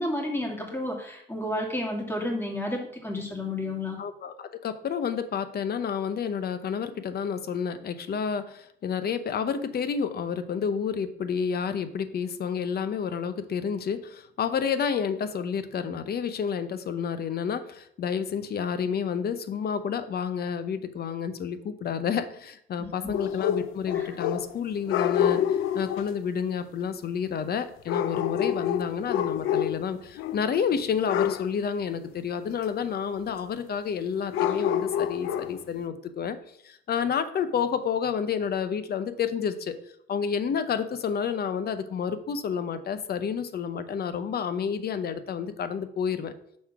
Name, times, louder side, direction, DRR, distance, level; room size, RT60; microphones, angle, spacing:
voice 1, 0.0-4.0 22.8-23.1 23.9-24.1, left 1 dB, 10° left, 0 dB, 2.0 m, -31 dB
voice 2, 4.0-36.4 36.6-39.8 40.1-46.3, left 7 dB, 55° left, 11 dB, 0.7 m, -30 dB
sound 1, 23.1-24.6 24.9-26.1 27.9-29.9 30.2-30.5 31.1-31.5 34.3-35.6, left 9 dB, 90° left, 0.4 m, -27 dB
6.3 x 3.6 x 5.9 m, 0.71 s
cardioid pair, 90°, 20 cm